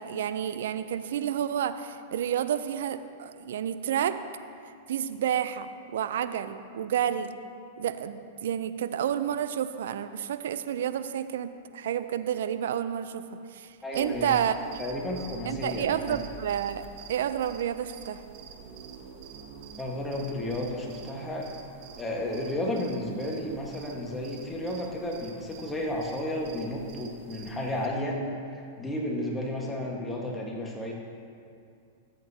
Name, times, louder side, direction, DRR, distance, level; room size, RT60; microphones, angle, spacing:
voice 1, 0.0-4.2 4.9-7.3 7.8-13.2 13.5-14.8 15.5-18.2, right 9 dB, 70° right, 12 dB, 0.4 m, -30 dB
voice 2, 13.8-14.3 14.8-16.2 19.7-21.5 22.0-28.2 28.8-30.9, left 1 dB, 10° left, -1 dB, 1.4 m, -32 dB
sound 1, 13.9-27.9, right 5 dB, 50° right, 0.9 m, -47 dB
13.5 x 8.1 x 2.8 m, 2.4 s
hypercardioid pair, 115°, 0 cm